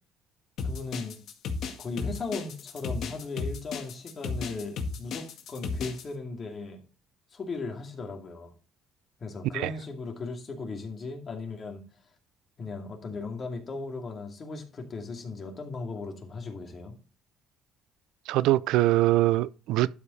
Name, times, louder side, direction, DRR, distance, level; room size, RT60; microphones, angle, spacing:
sound 1, 0.6-6.0, left 4 dB, 65° left, 1.9 m, -33 dB
voice 1, 0.6-1.2 1.8-6.8 7.3-8.5 9.2-11.8 12.6-16.9, left 3 dB, 35° left, 2.4 m, -37 dB
voice 2, 18.3-19.9, right 16 dB, 90° right, 0.4 m, -23 dB
11.5 x 5.1 x 4.2 m
cardioid pair, 135°, 0 cm